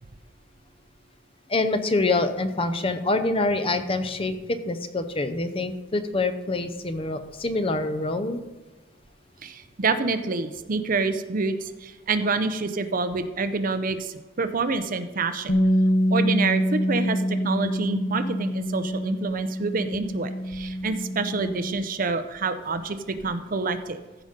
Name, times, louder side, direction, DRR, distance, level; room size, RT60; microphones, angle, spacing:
voice 1, 1.5-8.4, left 2 dB, 25° left, 10 dB, 0.7 m, -26 dB
voice 2, 9.4-15.5 16.1-24.0, right 3 dB, 45° right, 10 dB, 0.6 m, -27 dB
Bass guitar, 15.5-21.7, equal, 50° left, 1.0 m, -25 dB
15.0 x 5.3 x 5.2 m, 1.2 s
head